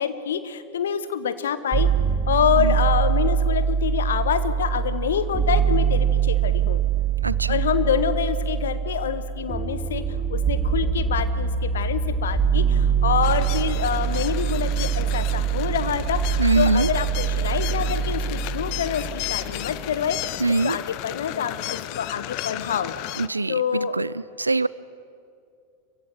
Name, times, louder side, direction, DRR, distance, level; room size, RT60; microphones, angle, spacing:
voice 1, 0.0-1.9 2.3-6.8 7.5-10.0 10.3-20.3 20.6-22.9 23.5-24.0, left 8 dB, 65° left, 12 dB, 1.3 m, -26 dB
sound 1, 1.7-19.7, right 7 dB, 20° right, 1.4 m, -24 dB
voice 2, 7.2-7.6 16.4-16.9 20.4-20.8 23.2-24.7, right 3 dB, 80° right, 19 dB, 0.5 m, -23 dB
sound 2, 12.7-20.3, equal, 80° left, 4.6 m, -47 dB
sound 3, 13.2-23.3, left 17 dB, 45° left, 0.7 m, -34 dB
26.0 x 15.5 x 9.2 m, 2.4 s
figure-of-eight pair, 90°, 0 cm